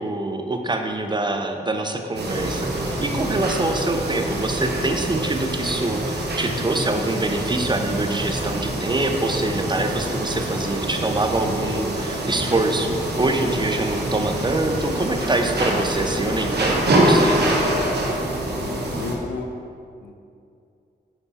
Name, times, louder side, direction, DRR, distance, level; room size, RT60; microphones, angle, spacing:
voice 1, 0.0-17.4, right 2 dB, 25° right, 5 dB, 0.6 m, -25 dB
sound 1, 2.1-19.1, right 1 dB, 70° right, 1.1 m, -25 dB
voice 2, 18.5-19.5 20.0-20.1, left 4 dB, 80° left, 5 dB, 0.6 m, -33 dB
6.0 x 5.4 x 4.1 m, 2.5 s
cardioid pair, 60°, 18 cm